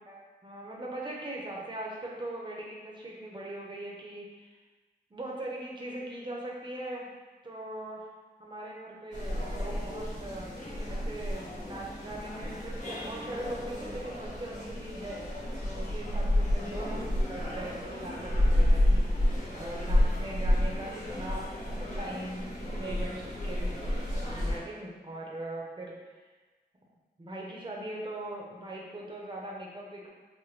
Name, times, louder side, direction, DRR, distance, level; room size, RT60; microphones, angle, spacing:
voice 1, 0.0-4.6 5.1-7.1 7.4-8.1 8.4-10.5 10.9-15.3 15.6-26.0 27.2-30.1, right 1 dB, 30° right, -3 dB, 0.7 m, -40 dB
sound 1, 9.1-24.6, left 1 dB, 45° left, 0.9 m, -30 dB
4.8 x 2.2 x 3.1 m, 1.3 s
wide cardioid pair, 125°, 17 cm